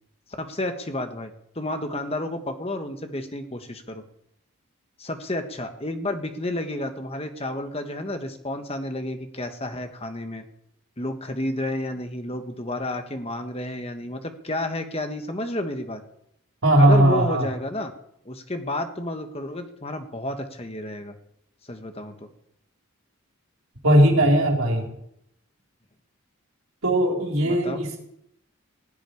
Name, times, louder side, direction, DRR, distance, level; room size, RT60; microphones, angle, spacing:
voice 1, 0.4-4.0 5.0-10.4 11.0-16.0 16.8-17.9 18.2-21.1 21.7-22.3 27.4-27.8, left 1 dB, 25° left, 6 dB, 1.5 m, -31 dB
voice 2, 16.6-17.5 23.8-24.9 26.8-28.0, right 1 dB, 75° right, 0 dB, 4.4 m, -18 dB
16.5 x 7.8 x 9.8 m, 0.76 s
head